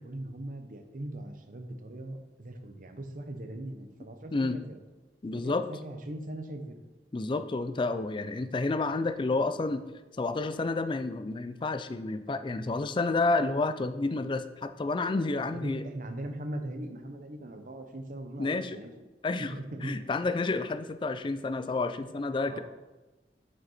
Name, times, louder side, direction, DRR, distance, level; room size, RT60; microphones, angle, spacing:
voice 1, 0.0-4.8 5.3-6.8 15.5-18.9 19.4-19.9 22.5-22.6, right 1 dB, 50° right, 6 dB, 0.8 m, -40 dB
voice 2, 5.2-5.7 7.1-9.8 10.2-15.8 18.4-18.8 19.2-19.5 19.8-22.6, left 3 dB, 30° left, 10 dB, 0.4 m, -30 dB
7.4 x 5.4 x 4.2 m, 1.1 s
head